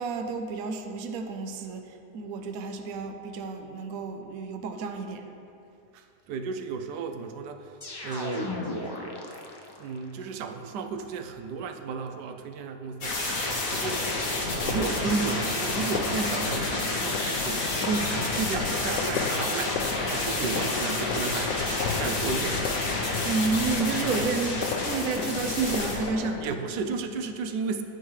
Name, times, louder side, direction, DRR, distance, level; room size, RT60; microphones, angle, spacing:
voice 1, 0.0-5.3 23.2-26.6, right 4 dB, 65° right, 5 dB, 1.0 m, -31 dB
voice 2, 6.3-7.7 8.0-8.5 9.8-13.4 13.7-14.3 14.6-22.7 26.4-27.8, right 5 dB, 90° right, 7 dB, 1.2 m, -33 dB
sound 1, 7.8-10.0, left 1 dB, 40° left, 0.3 m, -35 dB
sound 2, 13.0-26.0, left 2 dB, 55° left, 1.8 m, -30 dB
sound 3, 13.7-26.5, left 6 dB, 90° left, 1.2 m, -34 dB
11.0 x 8.9 x 3.2 m, 2.6 s
omnidirectional pair, 1.8 m